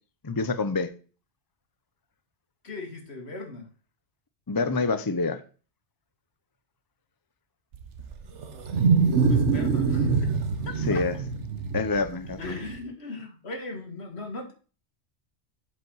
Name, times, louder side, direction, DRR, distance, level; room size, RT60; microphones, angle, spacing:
voice 1, 0.2-0.9 4.5-5.4 10.9-11.2 11.7-12.5, left 4 dB, 25° left, 10 dB, 0.5 m, -26 dB
voice 2, 2.6-3.7 9.3-10.3 10.9-11.1 12.4-14.5, left 2 dB, 65° left, 3 dB, 2.1 m, -38 dB
Wild animals, 7.7-12.8, right 5 dB, 85° right, 1.3 m, -24 dB
7.6 x 5.3 x 6.2 m, 0.38 s
omnidirectional pair, 1.2 m